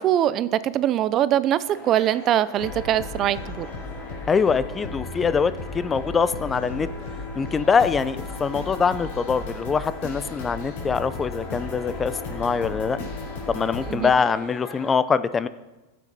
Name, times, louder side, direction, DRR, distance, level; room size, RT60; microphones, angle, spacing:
voice 1, 0.0-3.7 13.9-14.1, right 11 dB, 40° right, 16 dB, 0.4 m, -22 dB
sound 1, 1.7-14.9, left 3 dB, 45° left, 3.1 m, -43 dB
sound 2, 2.6-13.9, left 2 dB, 65° left, 3.4 m, -35 dB
voice 2, 4.3-6.9 7.4-13.0 13.5-15.5, left 5 dB, 20° left, 15 dB, 0.4 m, -23 dB
14.5 x 7.5 x 4.1 m, 1.1 s
hypercardioid pair, 115°, 0 cm